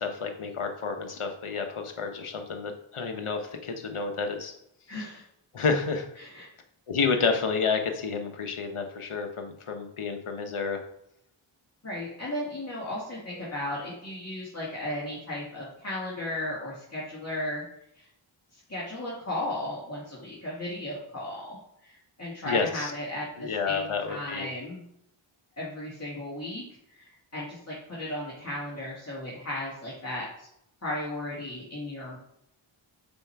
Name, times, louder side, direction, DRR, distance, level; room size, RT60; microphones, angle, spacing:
voice 1, 0.0-4.5 5.5-6.1 6.9-10.8 22.4-22.9 23.4-24.5, left 5 dB, 85° left, 5 dB, 1.0 m, -30 dB
voice 2, 4.9-5.2 6.2-6.5 11.8-17.6 17.9-18.1 18.5-21.6 21.8-24.8 25.6-26.6 26.9-30.3 30.8-32.2, left 1 dB, 30° left, -6 dB, 2.0 m, -35 dB
5.3 x 4.4 x 4.6 m, 0.75 s
wide cardioid pair, 50°, 49 cm